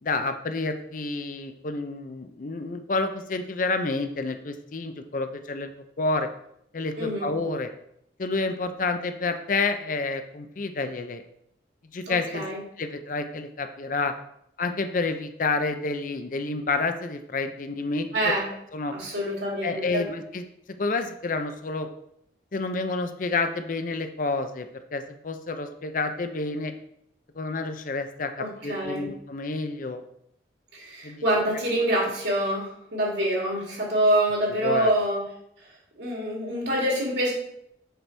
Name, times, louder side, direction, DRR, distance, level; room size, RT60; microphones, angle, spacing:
voice 1, 0.0-5.7 6.0-6.3 6.7-7.7 8.2-11.2 11.9-12.5 12.8-14.1 14.6-18.3 18.7-18.9 19.6-20.4 20.8-21.9 22.5-26.7 27.4-30.0 31.0-31.2 34.6-34.9, left 3 dB, 45° left, 8 dB, 0.5 m, -29 dB
voice 2, 7.0-7.3 12.1-12.6 18.1-18.5 18.9-20.0 28.4-29.1 30.7-35.2 36.0-37.3, right 1 dB, 70° right, -3 dB, 2.5 m, -26 dB
6.7 x 5.9 x 3.3 m, 0.74 s
head